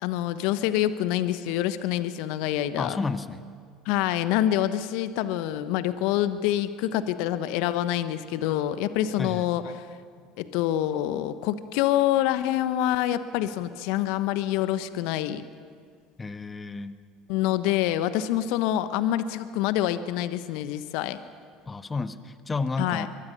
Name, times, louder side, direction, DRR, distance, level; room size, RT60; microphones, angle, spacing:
voice 1, 0.0-3.0 3.8-9.9 10.4-15.4 17.3-21.2 22.8-23.1, left 12 dB, 65° left, 12 dB, 1.1 m, -26 dB
voice 2, 2.8-3.5 9.2-9.5 16.2-17.0 21.7-23.1, left 3 dB, 20° left, 11 dB, 1.3 m, -31 dB
23.5 x 23.0 x 6.8 m, 2.1 s
hypercardioid pair, 70°, 0 cm